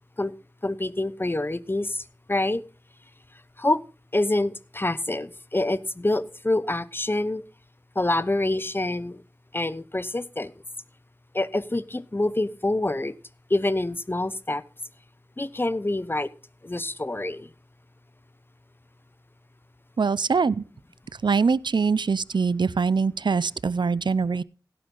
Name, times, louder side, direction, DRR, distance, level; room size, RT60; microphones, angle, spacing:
voice 1, 0.6-2.0 2.3-2.6 3.6-3.8 4.1-7.4 8.0-9.2 9.5-10.5 11.3-13.1 13.5-14.6 15.4-16.3 16.6-17.5, left 2 dB, 30° left, 0.8 m, -26 dB
voice 2, 20.0-20.6 21.2-24.4, right 5 dB, 75° right, 0.5 m, -23 dB
16.5 x 9.2 x 3.9 m
wide cardioid pair, 65°, 8 cm